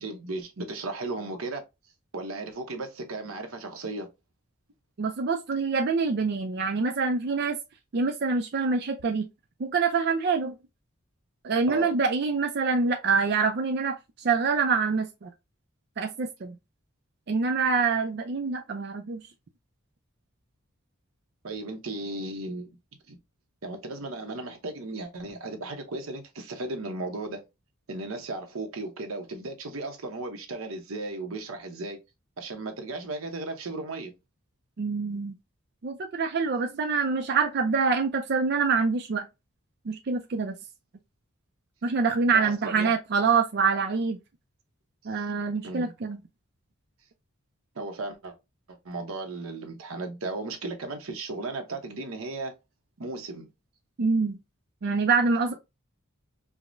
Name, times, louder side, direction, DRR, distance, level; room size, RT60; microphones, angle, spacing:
voice 1, 0.0-1.6 2.1-4.1 11.7-11.9 21.4-22.7 23.1-23.2 23.6-27.4 27.9-32.0 32.4-34.1 42.3-42.9 45.2-45.3 45.6-45.9 47.8-48.3 48.8-52.5 53.0-53.5, right 2 dB, 90° right, 0.8 m, -35 dB
voice 2, 5.0-7.6 7.9-9.3 9.6-10.5 11.4-15.3 16.0-16.6 17.3-19.2 34.8-35.3 35.8-39.2 39.9-40.6 41.8-44.2 45.1-46.2 54.0-54.4 54.8-55.5, right 4 dB, 50° right, 0.4 m, -25 dB
4.6 x 2.1 x 2.5 m
head